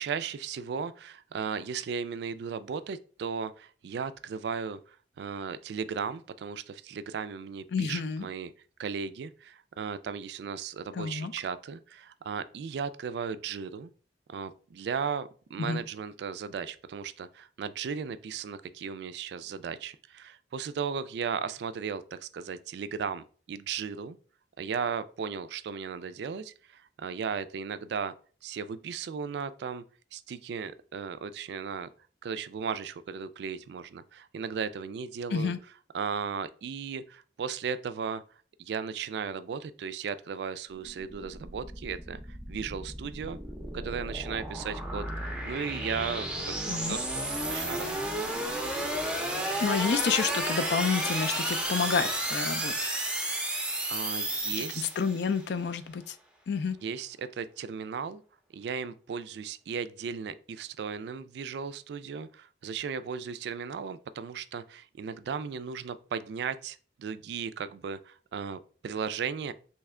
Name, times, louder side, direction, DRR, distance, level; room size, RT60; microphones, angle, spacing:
voice 1, 0.0-8.5 8.8-13.9 14.3-24.2 24.6-28.1 28.4-29.8 30.1-31.9 32.2-35.5 35.9-38.2 38.6-43.4 43.7-47.9 53.9-54.8 56.8-58.2 58.5-69.5, right 6 dB, 65° right, 0.3 m, -36 dB
voice 2, 7.7-8.3 10.9-11.3 15.6-15.8 35.3-35.6 46.7-47.0 49.6-52.9 54.6-56.2 56.5-56.8, left 5 dB, 65° left, 0.4 m, -29 dB
sound 1, 40.7-55.3, right 1 dB, 5° right, 0.5 m, -33 dB
3.2 x 2.8 x 3.6 m
head